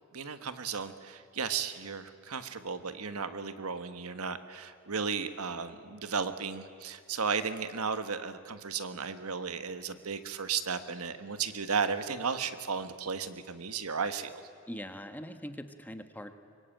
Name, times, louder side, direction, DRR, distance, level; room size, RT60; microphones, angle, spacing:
voice 1, 0.1-14.4, right 5 dB, 85° right, 10 dB, 1.4 m, -34 dB
voice 2, 14.7-16.3, equal, 10° left, 8 dB, 1.2 m, -42 dB
24.5 x 22.0 x 9.1 m, 2.3 s
head